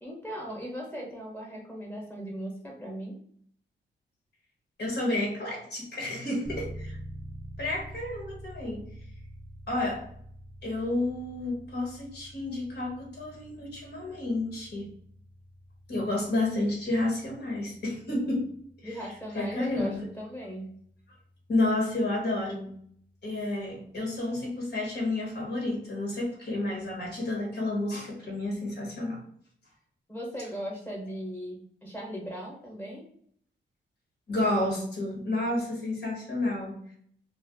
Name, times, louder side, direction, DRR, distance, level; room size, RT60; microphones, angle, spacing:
voice 1, 0.0-3.1 18.8-20.7 30.1-33.0, equal, 10° left, -2 dB, 1.1 m, -38 dB
voice 2, 4.8-7.0 7.6-8.8 9.7-10.0 10.6-14.9 15.9-18.5 18.8-19.0 19.3-20.1 21.5-22.7 23.2-29.2 34.3-36.8, left 2 dB, 60° left, -2 dB, 1.3 m, -30 dB
sound 1, 6.5-23.2, right 1 dB, 10° right, 0.4 m, -47 dB
2.4 x 2.3 x 3.6 m, 0.63 s
cardioid pair, 85°, 20 cm